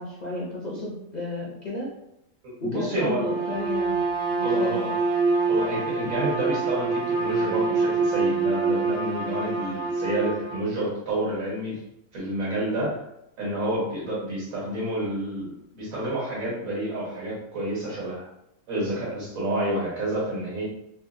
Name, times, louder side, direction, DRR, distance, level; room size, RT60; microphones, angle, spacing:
voice 1, 0.0-1.9 2.6-4.0 4.3-4.7, left 2 dB, 50° left, -4 dB, 0.5 m, -32 dB
voice 2, 2.6-3.3 4.4-4.9 5.5-11.8 12.1-13.0 13.4-18.2 18.7-20.7, right 1 dB, 85° right, -5 dB, 1.6 m, -29 dB
Bowed string instrument, 3.2-10.7, right 3 dB, 60° right, 0.3 m, -26 dB
3.6 x 2.0 x 2.6 m, 0.81 s
omnidirectional pair, 1.4 m